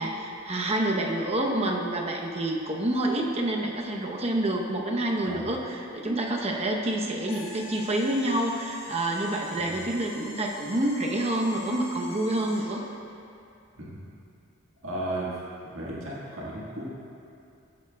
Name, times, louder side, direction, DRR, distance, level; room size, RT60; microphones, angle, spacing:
voice 1, 0.0-12.8, right 1 dB, 30° right, 0 dB, 0.8 m, -28 dB
sound 1, 7.3-12.8, left 2 dB, 30° left, 1.3 m, -44 dB
voice 2, 14.8-15.3 15.7-16.8, right 1 dB, 70° right, -6 dB, 1.6 m, -35 dB
15.0 x 8.3 x 2.3 m, 2.6 s
head